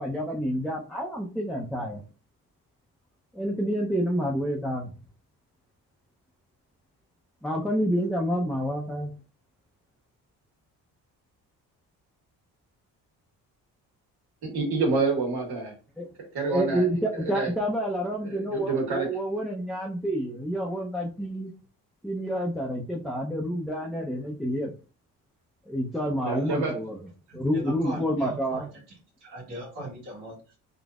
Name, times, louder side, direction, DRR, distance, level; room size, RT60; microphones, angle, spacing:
voice 1, 0.0-2.0 3.3-4.9 7.4-9.1 16.0-16.1 16.5-21.5 22.0-24.7 25.7-27.0 27.3-28.6, equal, ahead, -2 dB, 0.7 m, -28 dB
voice 2, 14.4-15.7 16.3-16.9 17.2-17.5 18.3-19.1 26.3-26.8, right 4 dB, 75° right, -1 dB, 1.8 m, -27 dB
voice 3, 27.3-28.6 29.2-30.6, right 1 dB, 90° right, -7 dB, 1.7 m, -40 dB
4.0 x 2.5 x 2.4 m, 0.34 s
supercardioid pair, 60°, 40 cm